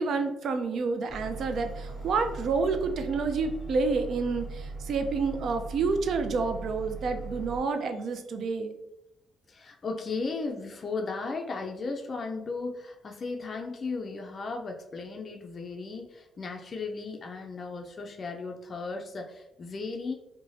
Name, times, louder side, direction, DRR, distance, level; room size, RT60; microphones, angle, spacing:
voice 1, 0.0-8.7, right 4 dB, 65° right, 7 dB, 0.3 m, -29 dB
sound 1, 1.1-7.6, right 3 dB, 45° right, 1.2 m, -39 dB
voice 2, 9.5-20.1, left 3 dB, 40° left, 2 dB, 0.3 m, -36 dB
2.5 x 2.1 x 3.1 m, 0.85 s
cardioid pair, 90°, 0 cm